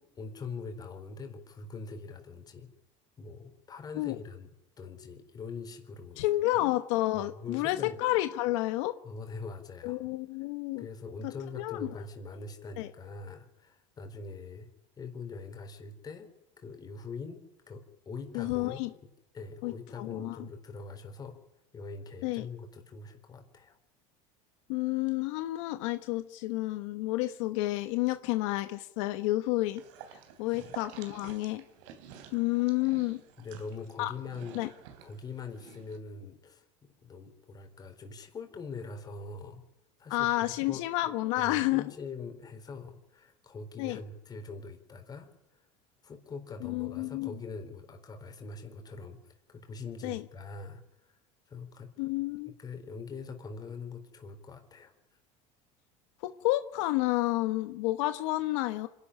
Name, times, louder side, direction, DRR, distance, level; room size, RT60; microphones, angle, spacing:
voice 1, 0.2-2.7 3.2-4.5 4.8-6.3 6.5-6.6 7.1-8.0 9.0-10.0 10.3-10.4 10.8-14.7 15.0-16.3 16.6-17.4 17.7-18.8 19.3-21.4 21.7-23.8 30.5-30.7 33.4-34.6 35.0-36.6 37.0-39.6 40.0-45.3 46.0-51.2 51.5-51.9 52.5-54.9, left 4 dB, 25° left, 5 dB, 4.1 m, -43 dB
voice 2, 6.2-8.9 9.8-10.9 11.5-11.9 12.8-12.9 18.3-18.9 19.6-20.4 22.2-22.5 24.7-29.8 30.4-31.6 32.3-33.2 34.0-34.1 34.5-34.7 40.1-41.8 43.8-44.0 46.6-47.3 50.0-50.2 52.0-52.5 56.2-58.9, left 18 dB, 75° left, 10 dB, 1.1 m, -30 dB
sound 1, 29.6-36.0, right 8 dB, 75° right, 3.3 m, -51 dB
26.0 x 12.0 x 10.0 m, 0.89 s
supercardioid pair, 140°, 16 cm